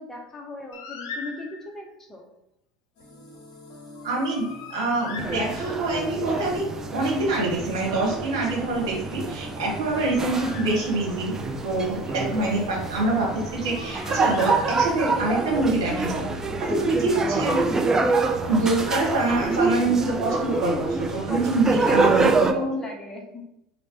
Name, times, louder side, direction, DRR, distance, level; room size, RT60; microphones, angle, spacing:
voice 1, 0.0-2.2 21.3-23.4, left 2 dB, 20° left, 1 dB, 0.8 m, -38 dB
Bird, 0.7-1.9 4.0-6.0 9.5-11.3 13.3-15.2, left 5 dB, 70° left, 0.5 m, -41 dB
sound 1, 3.0-19.6, left 1 dB, 45° left, 1.2 m, -41 dB
voice 2, 4.0-6.7 6.9-11.3 11.6-16.2 16.6-17.6 18.5-22.7, right 2 dB, 75° right, -3 dB, 1.5 m, -25 dB
sound 2, 5.2-22.5, right 3 dB, 20° right, 0.4 m, -26 dB
3.1 x 3.0 x 2.9 m, 0.82 s
hypercardioid pair, 80°, 2 cm